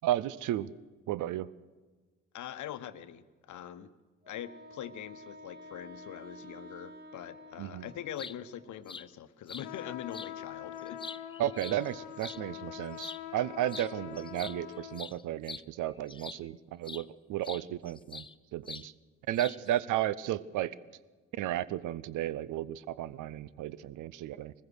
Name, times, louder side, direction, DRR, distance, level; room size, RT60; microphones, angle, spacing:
voice 1, 0.0-0.7 1.1-1.5 7.6-7.9 11.4-18.2 18.5-18.9 19.3-20.7 21.3-24.5, right 13 dB, 55° right, 19 dB, 0.8 m, -33 dB
voice 2, 2.3-3.9 4.3-11.0, left 10 dB, 50° left, 13 dB, 1.1 m, -43 dB
Wind instrument woodwind instrument, 4.2-8.9, equal, 25° right, 3.1 m, -51 dB
sound 1, 8.0-8.4 8.9-9.1 9.5-9.7 10.1-10.3 10.8-12.4 12.9-13.2 13.7-13.9 14.2-16.5 16.8-17.1 17.4-18.3 18.7-18.9 19.4-19.8, left 4 dB, 15° left, 0.6 m, -44 dB
sound 2, 9.6-15.1, left 12 dB, 70° left, 1.2 m, -44 dB
23.0 x 20.5 x 6.4 m, 1.3 s
figure-of-eight pair, 45°, 37 cm